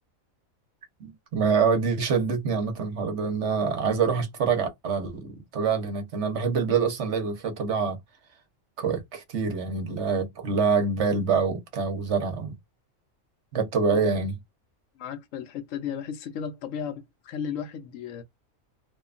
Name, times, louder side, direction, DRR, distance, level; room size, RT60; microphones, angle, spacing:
voice 1, 1.0-8.0 8.8-12.5 13.5-14.4, right 5 dB, 60° right, 1.0 m, -26 dB
voice 2, 15.0-18.2, left 8 dB, 75° left, 1.0 m, -34 dB
2.9 x 2.2 x 2.4 m
omnidirectional pair, 1.4 m